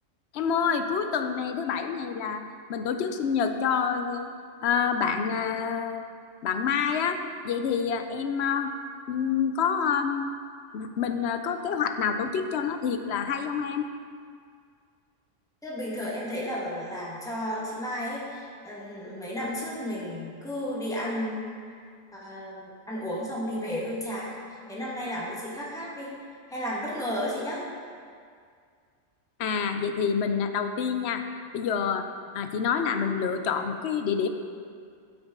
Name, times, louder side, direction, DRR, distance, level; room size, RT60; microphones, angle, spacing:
voice 1, 0.3-2.4 2.7-4.3 4.6-6.0 6.4-8.7 9.1-10.3 10.7-13.9 29.4-31.2 31.5-32.1 32.3-34.3, left 6 dB, 65° left, 7 dB, 0.8 m, -27 dB
voice 2, 15.6-21.8 22.1-24.4 24.7-26.1 26.5-27.6, equal, 5° left, -5 dB, 1.5 m, -33 dB
12.5 x 6.2 x 3.8 m, 2.1 s
omnidirectional pair, 1.3 m